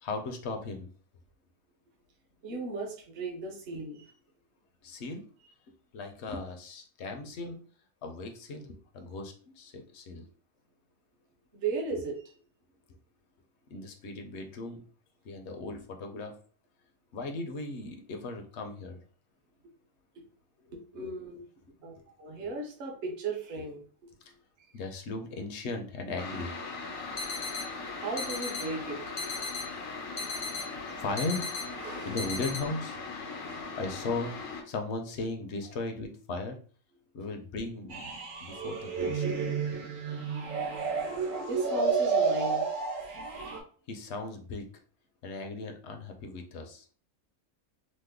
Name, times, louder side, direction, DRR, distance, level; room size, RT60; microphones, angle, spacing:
voice 1, 0.0-0.9 4.8-5.3 5.9-7.6 8.0-10.3 11.9-12.0 13.7-14.8 15.2-16.3 17.1-19.0 20.9-21.2 21.6-21.9 24.7-26.5 30.4-30.7 31.0-31.5 32.1-33.0 33.8-34.4 34.6-36.6 37.1-39.2 43.9-44.7 45.2-46.8, left 3 dB, 65° left, 4 dB, 0.8 m, -37 dB
voice 2, 2.4-4.1 11.5-12.2 20.7-21.4 21.8-21.9 22.2-23.8 24.6-24.7 27.9-29.0 31.8-32.2 33.4-33.6 41.5-42.7, right 3 dB, 55° right, 1 dB, 0.9 m, -36 dB
sound 1, 26.2-34.6, left 4 dB, 90° left, 1.1 m, -39 dB
sound 2, 27.2-27.7 28.2-28.7 29.2-29.7 30.2-30.7 31.2-31.7 32.2-32.6, left 3 dB, 35° left, 0.5 m, -37 dB
sound 3, 37.9-43.6, right 5 dB, 85° right, 1.2 m, -30 dB
3.1 x 2.0 x 3.5 m, 0.42 s
omnidirectional pair, 1.3 m